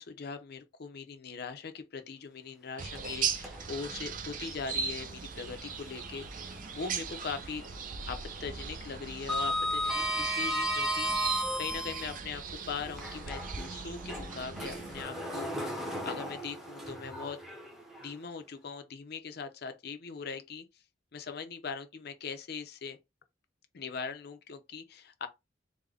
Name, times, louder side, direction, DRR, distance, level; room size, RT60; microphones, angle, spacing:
voice 1, 0.0-7.6 8.1-17.4 18.0-20.8 21.1-23.0 23.7-25.3, left 5 dB, 60° left, 0.6 m, -41 dB
sound 1, 2.8-15.0, right 6 dB, 45° right, 0.5 m, -39 dB
Sliding door, 3.0-3.9 4.3-4.4 6.1-7.2 7.5-7.8 8.1-12.2 12.9-18.1, equal, ahead, 0.7 m, -35 dB
3.6 x 2.1 x 3.4 m
head